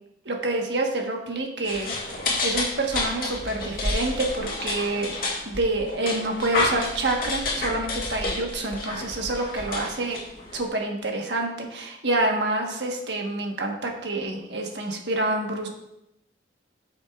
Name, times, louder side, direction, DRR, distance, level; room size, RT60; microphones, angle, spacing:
voice 1, 0.2-5.1 5.4-10.2 10.5-15.7, right 2 dB, 75° right, 1 dB, 1.3 m, -27 dB
sound 1, 1.6-10.7, left 2 dB, 50° left, 1.9 m, -30 dB
13.5 x 6.4 x 2.4 m, 0.85 s
head